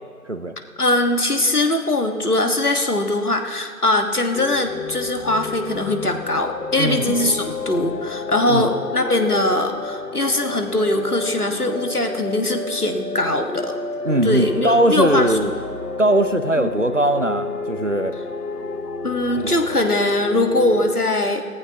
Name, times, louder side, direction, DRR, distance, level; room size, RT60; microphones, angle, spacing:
voice 1, 0.8-13.8 14.2-15.6 16.6-16.7 19.0-21.5, left 1 dB, 70° left, 5 dB, 1.5 m, -21 dB
sound 1, 4.3-20.9, left 3 dB, 90° left, 0.9 m, -31 dB
voice 2, 6.8-7.2 8.5-8.7 14.0-15.5 16.0-18.1 19.4-19.5, right 1 dB, 50° right, 10 dB, 0.7 m, -20 dB
17.5 x 15.0 x 2.8 m, 2.2 s
figure-of-eight pair, 175°, 47 cm